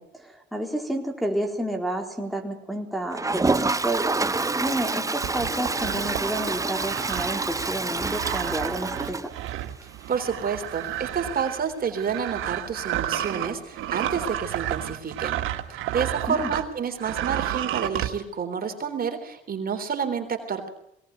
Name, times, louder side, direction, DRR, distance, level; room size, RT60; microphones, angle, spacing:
voice 1, 0.0-4.0 4.6-9.3 16.3-16.5, right 1 dB, ahead, 1 dB, 4.0 m, -30 dB
Toilet flush, 3.1-9.8 10.2-10.3 10.5-10.6 10.8-10.9 13.5-13.6 14.9-15.0, right 3 dB, 15° right, 0.9 m, -27 dB
sound 1, 5.2-16.7 17.0-18.1, right 12 dB, 90° right, 1.7 m, -31 dB
voice 2, 10.1-15.4 15.7-20.7, right 6 dB, 50° right, 6 dB, 3.6 m, -29 dB
22.0 x 18.0 x 9.3 m, 0.76 s
cardioid pair, 90°, 20 cm